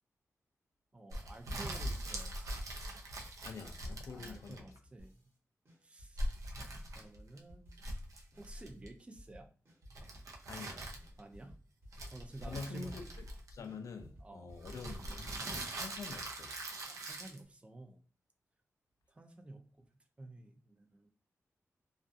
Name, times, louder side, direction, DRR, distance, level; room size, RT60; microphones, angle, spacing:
voice 1, 0.9-2.6 4.1-5.2 5.8-6.4 6.9-7.7 8.4-9.5 11.2-11.6 12.1-12.9 14.2-14.5 16.8-18.0 19.1-19.9 20.2-21.1, right 2 dB, 20° right, 0.4 m, -52 dB
sound 1, 1.1-4.8 6.2-7.4 7.7-8.9 9.9-11.2 11.9-13.7 14.6-17.4, right 1 dB, 85° right, 0.5 m, -42 dB
voice 2, 3.4-4.6 10.5-10.9 12.4-13.1 13.5-16.6, left 4 dB, 85° left, 0.4 m, -46 dB
sound 2, 5.0-5.4 5.6-8.0 8.3-10.7 11.0-13.3 13.6-15.6, equal, 55° right, 1.1 m, -57 dB
2.4 x 2.3 x 2.5 m
wide cardioid pair, 170°, 5 cm